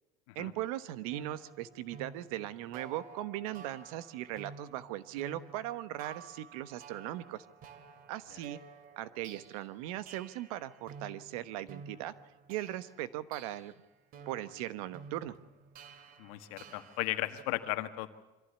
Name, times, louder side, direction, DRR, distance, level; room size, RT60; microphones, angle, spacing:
voice 1, 0.3-7.4 8.1-8.6 9.0-12.1 12.5-13.7 14.3-15.3, right 14 dB, 90° right, 15 dB, 1.2 m, -39 dB
sound 1, 1.1-17.4, right 5 dB, 55° right, 2.4 m, -52 dB
voice 2, 16.2-18.1, left 17 dB, 85° left, 9 dB, 1.7 m, -36 dB
24.0 x 15.0 x 8.3 m, 1.1 s
supercardioid pair, 115°, 18 cm